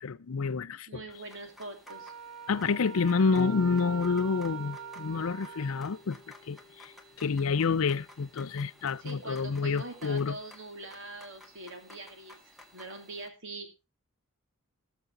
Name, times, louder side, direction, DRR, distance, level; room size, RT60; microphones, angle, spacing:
voice 1, 0.0-1.0 2.5-6.9 7.2-10.4, left 5 dB, 65° left, 0.5 m, -28 dB
voice 2, 0.9-2.1 9.0-13.9, right 2 dB, 60° right, 2.8 m, -43 dB
sound 1, 1.1-13.3, left 1 dB, ahead, 1.7 m, -55 dB
Wind instrument woodwind instrument, 1.9-6.0, right 8 dB, 80° right, 0.9 m, -43 dB
Electric guitar / Bass guitar, 3.4-9.8, left 2 dB, 30° left, 0.7 m, -48 dB
19.0 x 6.8 x 3.8 m
head